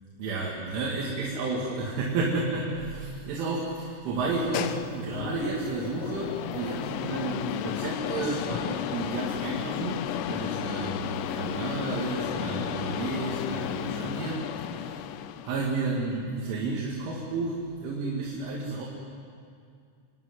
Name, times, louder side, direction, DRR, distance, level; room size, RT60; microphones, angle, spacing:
voice 1, 0.2-14.5 14.7-15.1 15.5-18.9, right 3 dB, 75° right, -4 dB, 4.7 m, -31 dB
sound 1, 4.2-15.8, left 11 dB, 85° left, 3.4 m, -33 dB
28.5 x 12.5 x 9.7 m, 2.3 s
omnidirectional pair, 5.7 m